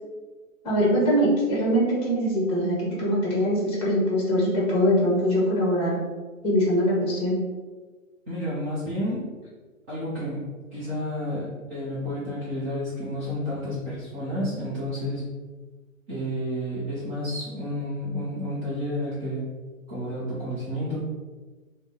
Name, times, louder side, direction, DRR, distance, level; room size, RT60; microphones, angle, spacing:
voice 1, 0.6-6.0 6.4-7.4, equal, 15° left, -5 dB, 0.9 m, -22 dB
voice 2, 8.3-9.3 9.9-15.3 16.1-19.5 19.9-21.0, equal, 15° right, -12 dB, 0.5 m, -31 dB
3.8 x 2.0 x 3.4 m, 1.3 s
figure-of-eight pair, 125°, 41 cm